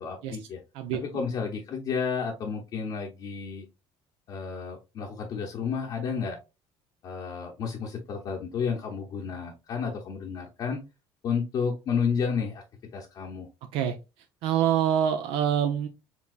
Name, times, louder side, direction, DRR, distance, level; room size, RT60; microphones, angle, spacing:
voice 1, 0.0-0.6 0.9-3.7 4.3-6.4 7.0-10.8 11.2-12.6 12.9-13.5, left 6 dB, 45° left, 0 dB, 0.8 m, -31 dB
voice 2, 14.4-15.9, right 9 dB, 75° right, 7 dB, 0.6 m, -25 dB
4.7 x 3.3 x 2.5 m, 0.26 s
cardioid pair, 155°, 10 cm